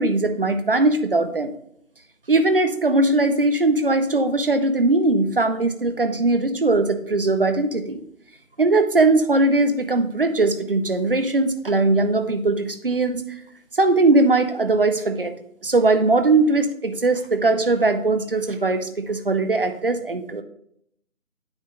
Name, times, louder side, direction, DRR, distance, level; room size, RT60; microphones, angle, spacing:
voice 1, 0.0-1.5 2.3-8.0 8.6-13.2 13.8-15.3 15.6-20.4, right 2 dB, 40° right, 9 dB, 0.6 m, -20 dB
8.8 x 3.7 x 4.7 m, 0.70 s
figure-of-eight pair, 155°, 42 cm